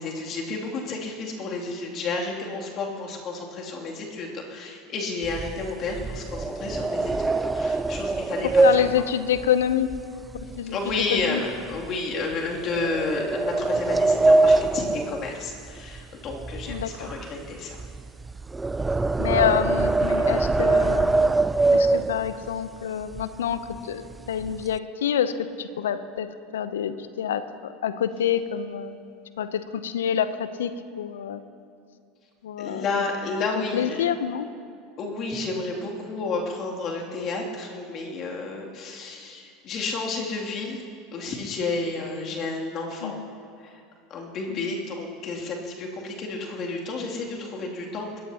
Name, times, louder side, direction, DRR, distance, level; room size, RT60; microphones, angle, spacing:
voice 1, 0.0-8.9 10.7-17.8 32.6-34.0 35.0-40.8 41.1-43.2 43.6-43.8 44.1-48.2, left 3 dB, 45° left, -1 dB, 2.9 m, -31 dB
sound 1, 5.2-10.6 10.9-11.2 11.7-11.9 12.7-16.0 16.3-22.5 23.1-23.2 23.5-23.8 24.1-24.8, right 3 dB, 15° right, 0.4 m, -23 dB
voice 2, 8.6-9.9 10.6-11.4 16.7-17.1 19.2-21.3 21.7-29.1 29.4-30.7 31.0-31.4 32.4-32.8 33.6-34.5 43.0-43.3 44.5-44.7, left 9 dB, 75° left, 13 dB, 0.8 m, -27 dB
27.5 x 14.5 x 3.0 m, 2.4 s
hypercardioid pair, 80°, 0 cm